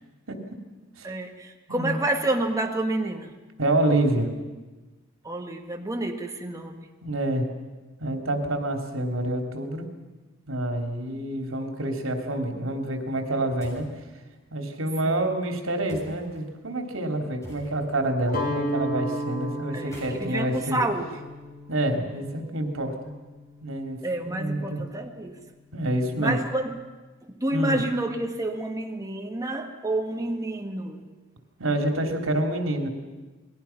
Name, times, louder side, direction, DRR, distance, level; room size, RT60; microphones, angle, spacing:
voice 1, 1.0-3.3 5.2-6.9 15.0-15.3 19.7-21.2 24.0-25.4 26.2-26.8 27.2-31.1, right 2 dB, 15° right, 3 dB, 1.7 m, -29 dB
voice 2, 3.6-4.3 7.0-7.5 8.0-9.8 10.5-13.9 14.5-20.8 21.7-22.9 23.6-24.0 24.2-24.8 25.7-26.4 27.5-27.8 31.6-32.9, right 1 dB, 90° right, 4 dB, 3.0 m, -27 dB
sound 1, 13.6-14.0 15.9-16.4 17.4-18.0 19.7-21.7, equal, 15° left, 7.4 m, -47 dB
Guitar, 18.3-24.3, equal, 50° left, 3.5 m, -34 dB
28.5 x 20.5 x 5.9 m, 1.2 s
head